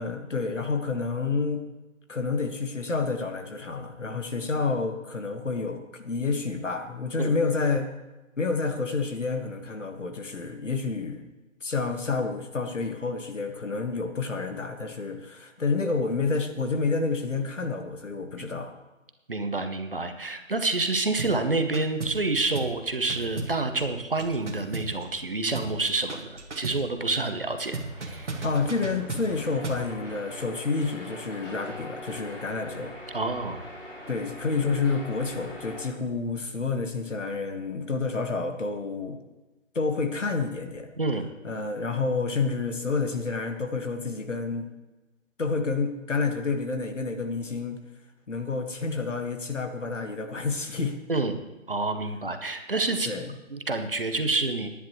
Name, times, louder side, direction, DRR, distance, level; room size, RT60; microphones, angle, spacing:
voice 1, 0.0-1.6 2.1-7.9 8.4-11.3 11.6-18.7 28.4-32.9 34.1-39.2 39.8-40.9 41.4-44.7 45.4-47.8 48.3-51.0 53.1-53.4, left 4 dB, 65° left, 5 dB, 1.8 m, -29 dB
voice 2, 19.3-28.4 33.1-33.6 41.0-41.3 51.1-51.4 51.7-53.1 53.5-54.7, right 3 dB, 45° right, 7 dB, 0.9 m, -28 dB
sound 1, 21.2-21.4 21.7-22.3 22.5-22.8 23.1-25.3 25.5-25.8 26.1-26.9 27.7-29.9, right 3 dB, 60° right, 1.8 m, -35 dB
sound 2, 27.4-35.9, left 1 dB, 45° left, 4.5 m, -43 dB
18.0 x 10.5 x 3.1 m, 1.1 s
hypercardioid pair, 180°, 39 cm